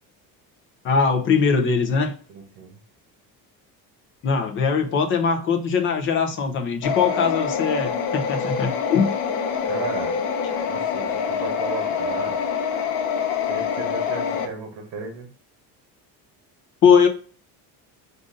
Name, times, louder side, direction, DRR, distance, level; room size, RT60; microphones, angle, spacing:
voice 1, 0.8-2.1 4.2-9.2 16.8-17.1, left 6 dB, 30° left, 0.6 m, -20 dB
voice 2, 2.3-2.7 9.6-10.2 10.7-12.4 13.5-15.3, right 5 dB, 55° right, 1.2 m, -34 dB
sound 1, 6.8-14.5, left 6 dB, 75° left, 0.8 m, -26 dB
5.1 x 2.7 x 3.7 m
cardioid pair, 180°, 39 cm